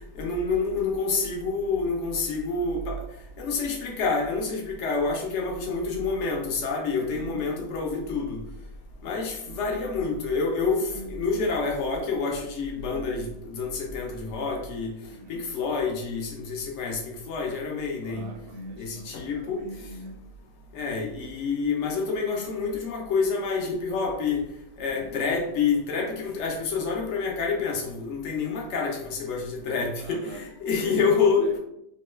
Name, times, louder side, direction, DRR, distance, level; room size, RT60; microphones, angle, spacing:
voice 1, 0.1-3.0 3.4-8.4 9.0-14.9 15.3-18.3 18.8-19.6 20.7-24.5 24.8-31.5, left 4 dB, 75° left, 0.6 m, -28 dB
voice 2, 7.0-7.5 9.4-9.8 10.8-11.1 12.8-13.1 15.1-15.5 18.0-20.2 24.9-25.2 30.0-30.4 30.7-31.6, right 2 dB, 70° right, 1.0 m, -43 dB
2.9 x 2.2 x 3.0 m
omnidirectional pair, 1.9 m